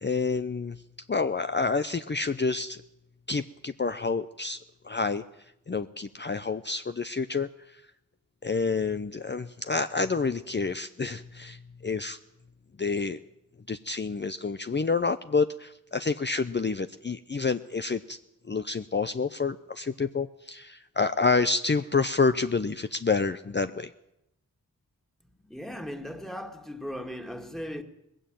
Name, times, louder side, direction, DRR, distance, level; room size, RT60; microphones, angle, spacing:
voice 1, 0.0-0.8 1.1-2.8 3.3-4.6 4.8-5.2 5.7-7.5 8.4-12.2 12.8-13.2 13.7-18.2 18.5-23.9, left 4 dB, 30° left, 0.7 m, -28 dB
voice 2, 25.4-27.8, equal, ahead, 2.1 m, -37 dB
19.0 x 15.5 x 9.2 m
cardioid pair, 55°, 36 cm